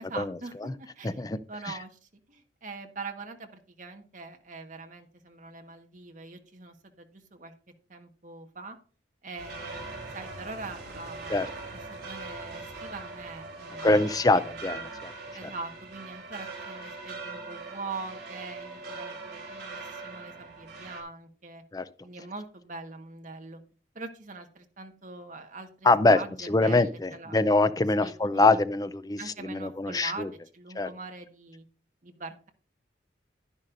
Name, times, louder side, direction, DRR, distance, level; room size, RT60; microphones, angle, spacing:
voice 1, 0.0-1.2 1.5-2.0 2.3-7.5 7.9-8.8 9.2-14.8 15.3-21.6 22.0-23.6 23.9-27.4 28.0-28.6 29.2-30.3 30.5-31.6 32.0-32.5, right 3 dB, 45° right, 5 dB, 1.4 m, -43 dB
sound 1, 9.4-21.0, right 3 dB, 65° right, 3.4 m, -41 dB
voice 2, 13.8-15.1 15.4-15.5 21.7-21.8 25.8-26.2 26.5-30.3 30.8-30.9, left 2 dB, 20° left, 13 dB, 0.5 m, -24 dB
11.0 x 10.5 x 2.6 m, 0.39 s
head